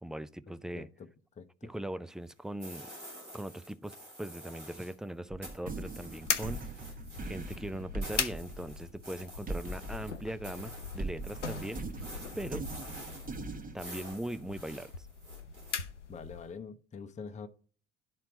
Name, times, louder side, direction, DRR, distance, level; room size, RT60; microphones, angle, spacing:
voice 1, 0.0-0.9 1.7-2.9 3.3-6.6 7.2-11.9 12.4-12.6 13.7-15.1, right 1 dB, ahead, 0.3 m, -40 dB
voice 2, 0.7-1.1 1.4-1.7 16.1-17.5, left 5 dB, 20° left, 0.7 m, -45 dB
sound 1, 2.6-5.0 5.4-15.7, equal, 90° right, 3.0 m, -49 dB
sound 2, 5.3-10.6 11.0-13.7, right 2 dB, 25° right, 1.2 m, -40 dB
sound 3, 6.2-16.6, left 6 dB, 85° left, 0.6 m, -40 dB
11.5 x 4.3 x 5.1 m
figure-of-eight pair, 55°, 35 cm